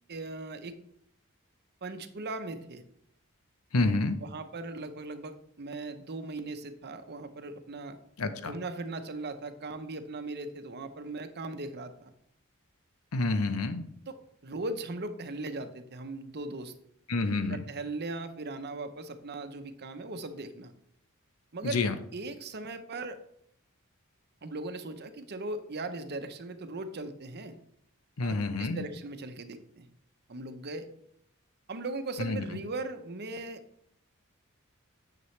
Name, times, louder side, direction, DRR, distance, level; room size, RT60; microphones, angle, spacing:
voice 1, 0.1-0.7 1.8-2.8 4.2-8.0 8.4-12.1 14.1-14.2 14.4-16.7 17.5-20.7 21.5-21.8 22.1-23.2 24.4-27.6 28.2-29.9 30.3-30.9 31.7-33.6, right 2 dB, 50° right, 9 dB, 0.8 m, -38 dB
voice 2, 3.7-4.2 8.2-8.5 13.1-13.9 17.1-17.6 21.6-22.0 28.2-28.8 32.2-32.4, left 3 dB, 90° left, 10 dB, 0.8 m, -28 dB
9.6 x 6.8 x 3.2 m, 0.71 s
head